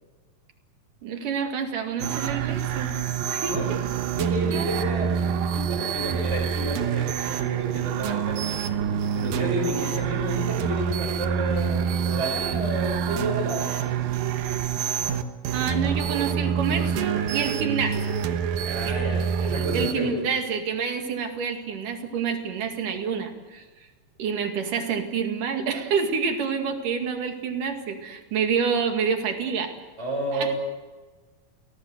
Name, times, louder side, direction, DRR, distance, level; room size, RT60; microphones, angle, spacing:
voice 1, 1.0-3.0 3.3-3.8 4.5-4.7 15.5-18.0 18.8-19.1 19.7-23.6 24.2-29.7 30.3-30.6, right 6 dB, 65° right, 5 dB, 3.7 m, -28 dB
sound 1, 2.0-19.9, right 8 dB, 85° right, 3.0 m, -27 dB
voice 2, 4.1-5.1 5.5-8.6 9.1-13.9 18.6-20.1 30.0-30.6, right 1 dB, 20° right, -3 dB, 6.2 m, -31 dB
29.0 x 18.0 x 8.0 m, 1.3 s
omnidirectional pair, 4.0 m